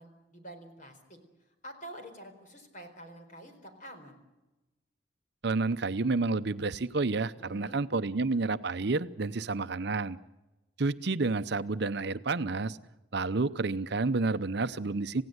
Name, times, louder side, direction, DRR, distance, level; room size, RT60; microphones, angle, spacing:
voice 1, 0.0-4.2 7.4-7.8, right 1 dB, 40° left, 6 dB, 4.4 m, -48 dB
voice 2, 5.4-10.2 10.8-12.8 13.1-15.2, right 3 dB, 55° right, 12 dB, 0.7 m, -30 dB
28.0 x 16.5 x 8.0 m, 1.1 s
head